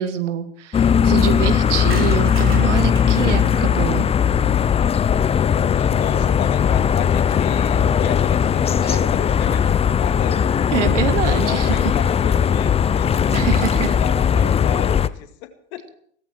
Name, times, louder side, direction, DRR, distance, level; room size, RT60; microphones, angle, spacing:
voice 1, 0.0-4.1 8.8-9.0 10.7-11.8 13.3-14.0, right 9 dB, 75° right, 10 dB, 1.8 m, -25 dB
sound 1, 0.7-15.1, left 8 dB, 15° left, 0.5 m, -18 dB
sound 2, 1.9-5.6 6.0-6.1 6.3-6.4 6.6-6.7 6.9-7.2, right 4 dB, 35° right, 3.9 m, -38 dB
voice 2, 5.7-10.5 11.3-13.3 13.8-15.9, left 10 dB, 60° left, 8 dB, 2.1 m, -33 dB
17.0 x 14.0 x 4.5 m, 0.63 s
hypercardioid pair, 85°, 36 cm